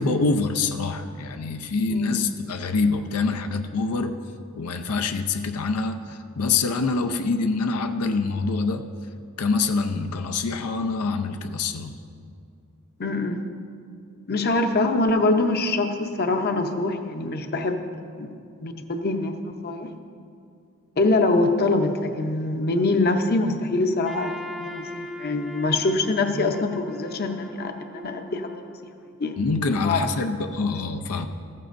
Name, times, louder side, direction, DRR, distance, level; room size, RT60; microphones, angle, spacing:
voice 1, 0.0-4.2 4.5-8.8 9.4-11.9 29.4-31.3, left 4 dB, 90° left, 7 dB, 0.5 m, -25 dB
voice 2, 1.9-2.2 13.0-13.4 14.3-17.8 18.2-19.9 21.0-28.6 29.2-30.3, left 2 dB, 45° left, 6 dB, 0.7 m, -24 dB
Trumpet, 24.0-29.1, left 1 dB, ahead, 0.6 m, -39 dB
14.5 x 14.0 x 2.6 m, 2.3 s
head